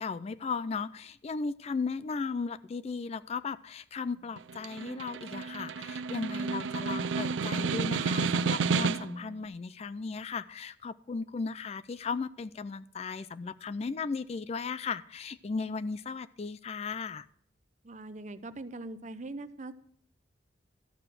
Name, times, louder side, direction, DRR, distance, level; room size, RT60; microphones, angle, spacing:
voice 1, 0.0-17.3, left 4 dB, 35° left, 16 dB, 0.3 m, -36 dB
Snare drum, 4.4-9.3, right 5 dB, 85° right, 0.5 m, -31 dB
voice 2, 17.8-19.7, right 2 dB, 40° right, 12 dB, 0.7 m, -41 dB
12.5 x 6.9 x 6.0 m, 0.68 s
head